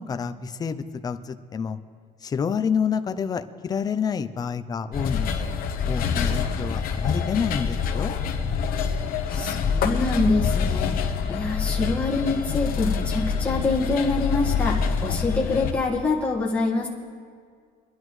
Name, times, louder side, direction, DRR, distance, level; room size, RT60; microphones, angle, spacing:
voice 1, 0.0-1.8 2.2-5.6 5.9-8.1, left 6 dB, 20° left, 10 dB, 0.5 m, -28 dB
sound 1, 4.9-15.7, left 6 dB, 60° left, 1.1 m, -26 dB
voice 2, 9.3-10.9 11.3-16.9, left 3 dB, 5° left, -4 dB, 1.6 m, -25 dB
25.0 x 10.5 x 3.2 m, 2.1 s
cardioid pair, 165°, 17 cm